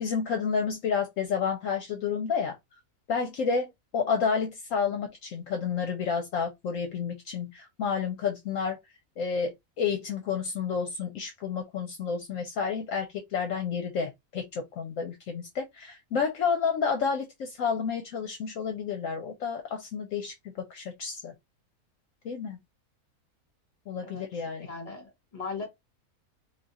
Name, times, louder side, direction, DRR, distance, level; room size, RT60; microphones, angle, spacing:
voice 1, 0.0-2.5 3.1-8.8 9.2-21.3 22.2-22.6 23.9-24.7, left 6 dB, 70° left, 0.9 m, -30 dB
voice 2, 24.6-25.7, left 4 dB, 25° left, 1.3 m, -38 dB
2.6 x 2.3 x 4.0 m
omnidirectional pair, 1.6 m